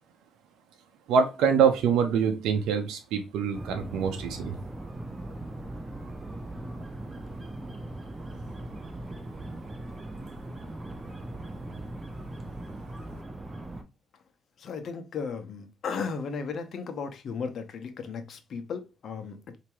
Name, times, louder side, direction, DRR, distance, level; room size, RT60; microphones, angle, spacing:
voice 1, 1.1-4.5, right 6 dB, 90° right, 0.8 m, -25 dB
sound 1, 3.5-13.8, right 1 dB, 20° right, 0.8 m, -39 dB
voice 2, 14.6-19.6, left 5 dB, 60° left, 0.9 m, -35 dB
4.7 x 2.9 x 2.9 m
cardioid pair, 90°, 0 cm